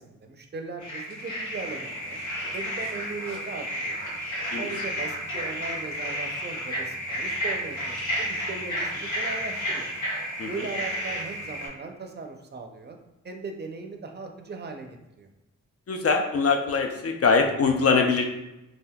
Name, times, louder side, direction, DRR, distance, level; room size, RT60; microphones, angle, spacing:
voice 1, 0.0-2.2 2.5-4.0 4.6-9.9 10.5-13.0 13.2-15.3, right 4 dB, 35° right, 4 dB, 0.5 m, -38 dB
sound 1, 0.8-11.7, equal, 75° left, 1.4 m, -32 dB
voice 2, 15.9-18.2, left 4 dB, 50° left, 3 dB, 0.4 m, -23 dB
3.5 x 2.5 x 2.2 m, 0.95 s
cardioid pair, 65°, 31 cm